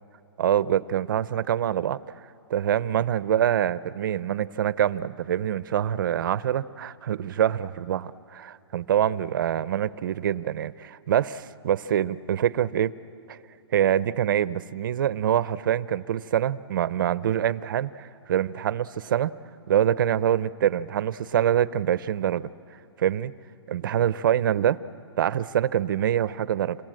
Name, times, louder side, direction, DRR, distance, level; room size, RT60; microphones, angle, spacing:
voice 1, 0.4-2.0 2.5-12.9 13.3-13.4 13.7-19.3 19.7-22.5 23.0-23.3 23.7-24.8 25.2-26.8, right 10 dB, 45° right, 17 dB, 0.5 m, -25 dB
27.5 x 22.0 x 7.6 m, 2.9 s
hypercardioid pair, 170°, 15 cm